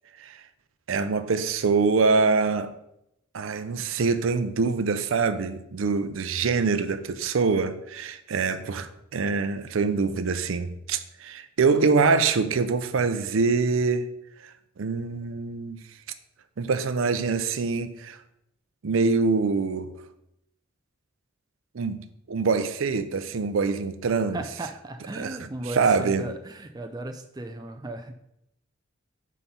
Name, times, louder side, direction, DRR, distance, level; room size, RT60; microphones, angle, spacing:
voice 1, 0.9-2.7 3.3-14.1 14.4-14.5 14.8-15.8 16.6-18.2 18.8-20.0 21.7-24.4 25.2-25.3 25.7-26.3, right 4 dB, 70° right, 0.5 m, -24 dB
voice 2, 8.4-8.8 24.3-28.1, right 2 dB, 20° right, 0.4 m, -36 dB
5.5 x 4.2 x 5.6 m
head